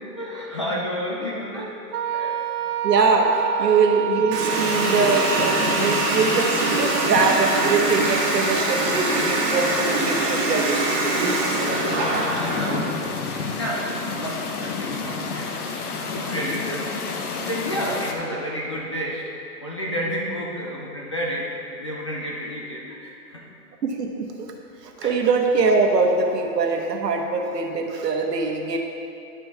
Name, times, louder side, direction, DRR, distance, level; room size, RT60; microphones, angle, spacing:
voice 1, 0.1-1.8 2.1-2.4 3.6-3.7 6.9-7.1 8.0-8.3 9.4-9.8 10.2-10.3 11.5-13.2 13.5-15.6 16.0-17.0 17.3-19.3 19.6-21.5 21.8-23.5 25.0-25.2, equal, 20° left, -4 dB, 0.4 m, -31 dB
Wind instrument woodwind instrument, 1.9-6.3, right 10 dB, 65° right, 0.6 m, -28 dB
voice 2, 2.8-10.8 11.2-11.4 23.8-24.5 24.8-28.8, right 4 dB, 85° right, 2 dB, 1.4 m, -22 dB
Water tap faucet, 4.3-12.8, right 2 dB, 25° right, 1.6 m, -24 dB
sound 1, 4.5-18.1, left 4 dB, 65° left, 1.1 m, -31 dB
11.0 x 5.3 x 4.6 m, 2.6 s
hypercardioid pair, 150°, 47 cm